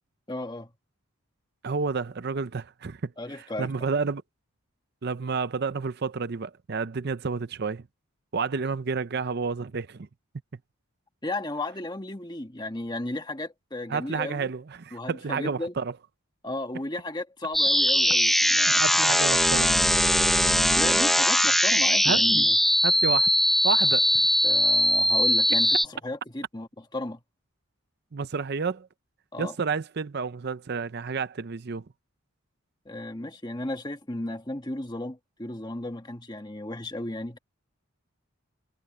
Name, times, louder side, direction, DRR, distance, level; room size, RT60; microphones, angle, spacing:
voice 1, 0.3-0.7 3.2-3.9 11.2-14.5 14.9-15.7 16.4-18.8 20.2-20.3 20.7-22.5 24.4-27.2 29.3-29.5 32.8-37.4, left 1 dB, 20° left, 1.5 m, -34 dB
voice 2, 1.6-4.2 5.0-7.8 8.3-10.1 13.9-15.9 18.8-19.7 22.0-22.5 22.8-23.3 23.6-24.1 28.1-28.9 29.4-31.8, right 5 dB, 50° right, 0.6 m, -30 dB
sound 1, 17.5-25.9, equal, ahead, 0.9 m, -21 dB
head